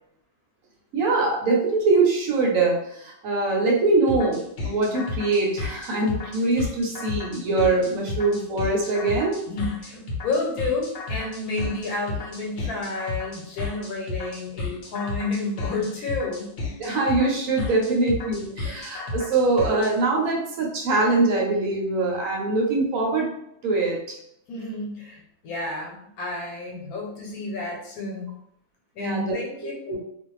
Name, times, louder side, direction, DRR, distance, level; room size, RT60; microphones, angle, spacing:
voice 1, 0.9-9.4 16.8-23.3 23.6-24.2 29.0-29.3 29.9-30.0, right 3 dB, 70° right, -1 dB, 1.0 m, -23 dB
sound 1, 4.1-19.9, left 3 dB, 60° left, 0.9 m, -32 dB
voice 2, 9.5-16.5 24.5-28.3 28.9-30.0, left 3 dB, 75° left, -1 dB, 1.2 m, -30 dB
2.5 x 2.4 x 3.1 m, 0.74 s
omnidirectional pair, 1.6 m